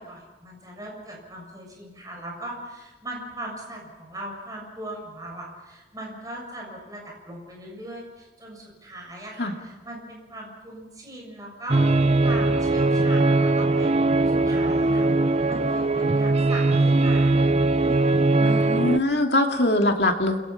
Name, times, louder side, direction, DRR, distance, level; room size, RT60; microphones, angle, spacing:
voice 1, 0.0-14.0 14.3-17.5 17.8-18.6, right 1 dB, 20° right, -1 dB, 7.0 m, -39 dB
sound 1, 11.7-19.0, right 2 dB, 35° right, 0.7 m, -20 dB
voice 2, 18.4-20.4, left 1 dB, 70° left, 3 dB, 2.6 m, -22 dB
29.5 x 22.0 x 5.9 m, 1.2 s
head